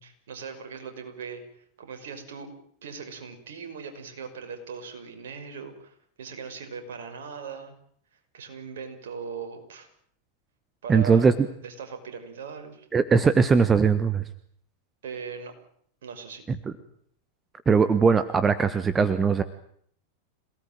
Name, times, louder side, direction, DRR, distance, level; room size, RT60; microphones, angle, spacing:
voice 1, 0.0-2.5 2.8-7.7 8.3-9.9 10.8-12.9 15.0-15.5 16.0-16.5, right 5 dB, 60° right, 7 dB, 5.7 m, -39 dB
voice 2, 10.9-11.3 12.9-14.2 17.7-19.4, right 5 dB, 15° right, 13 dB, 1.4 m, -20 dB
27.0 x 18.5 x 9.1 m, 0.64 s
figure-of-eight pair, 90°, 0 cm